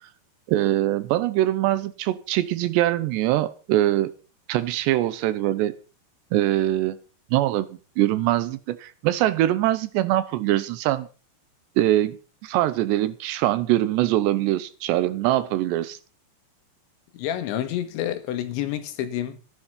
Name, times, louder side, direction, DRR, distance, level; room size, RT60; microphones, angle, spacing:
voice 1, 0.5-4.1 4.5-5.7 6.3-7.0 7.3-7.7 8.0-11.1 11.8-12.2 12.4-16.0, right 14 dB, 75° right, 2.8 m, -23 dB
voice 2, 17.1-19.4, left 11 dB, 80° left, 3.7 m, -28 dB
14.5 x 11.5 x 5.7 m
omnidirectional pair, 5.3 m